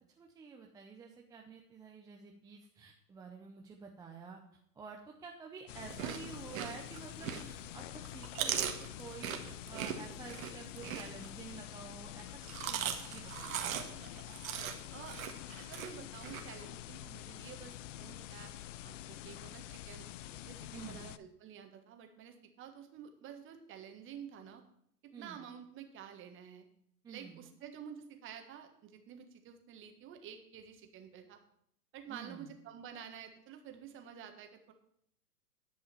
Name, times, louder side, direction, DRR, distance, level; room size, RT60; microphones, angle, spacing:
voice 1, 0.2-4.4 4.7-13.8 20.7-21.1 25.1-25.4 27.0-27.5 32.1-32.5, right 5 dB, 10° right, 1 dB, 0.5 m, -50 dB
sound 1, 5.7-21.2, left 13 dB, 50° left, 0.6 m, -47 dB
Chewing mastication, 5.8-7.7 8.0-11.6 12.3-16.4, right 9 dB, 55° right, 1.6 m, -39 dB
voice 2, 14.9-15.2 15.5-18.5 18.8-20.1 20.4-24.6 25.0-26.7 27.1-31.4 31.9-34.7, right 8 dB, 25° right, 6 dB, 1.5 m, -50 dB
10.5 x 5.6 x 6.9 m, 0.69 s
hypercardioid pair, 120°, 47 cm